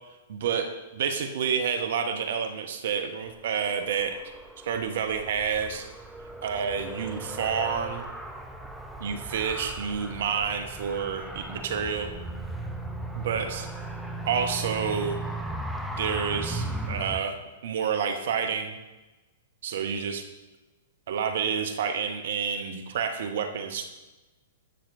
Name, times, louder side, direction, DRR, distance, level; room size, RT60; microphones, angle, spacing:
voice 1, 0.3-4.2 4.6-5.9 6.4-8.1 9.0-12.1 13.2-13.7 14.3-15.2 15.9-17.4 17.6-18.8 19.6-20.2 21.1-23.8, right 7 dB, 60° right, 7 dB, 0.7 m, -29 dB
Car, 3.3-17.2, right 1 dB, ahead, 0.6 m, -37 dB
10.0 x 5.8 x 2.5 m, 1.1 s
figure-of-eight pair, 110°, 0 cm